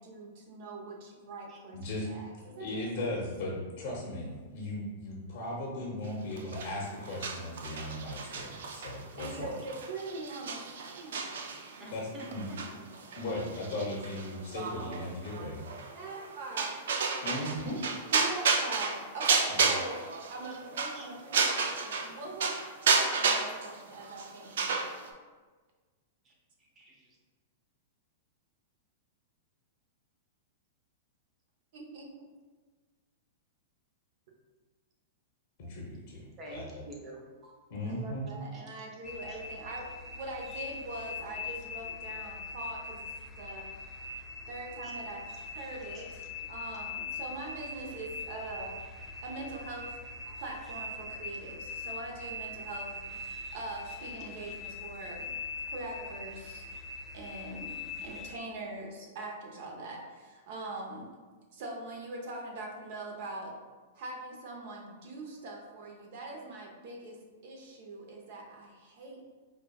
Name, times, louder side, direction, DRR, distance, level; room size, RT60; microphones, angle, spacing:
voice 1, 0.0-3.1 9.2-11.4 15.9-16.8 18.1-20.0 20.3-22.6 23.0-24.9 31.7-32.1 37.9-44.0 44.5-46.1 46.5-48.7 49.2-50.0 50.4-55.3 55.7-56.6 57.1-61.1 61.5-63.6 63.9-69.3, right 2 dB, 60° right, 0 dB, 0.7 m, -42 dB
voice 2, 1.7-2.1 2.5-9.6 11.9-12.8 13.2-15.7 17.2-17.8 19.5-19.6 35.6-36.8 37.7-38.3, left 1 dB, 60° left, -3 dB, 0.7 m, -37 dB
sound 1, 6.4-22.1 22.4-25.1, right 5 dB, 75° right, 0.4 m, -32 dB
voice 3, 11.8-12.6 17.8-17.9 20.9-21.1 22.0-22.1 26.2-26.3 26.6-27.2 36.4-37.7 38.5-38.6 39.3-39.4 44.8-44.9 45.9-46.0 50.3-50.4, right 1 dB, 25° right, -2 dB, 0.8 m, -49 dB
sound 2, 39.0-58.4, left 3 dB, 15° left, 0.4 m, -42 dB
4.9 x 2.3 x 2.3 m, 1.4 s
hypercardioid pair, 135°, 0 cm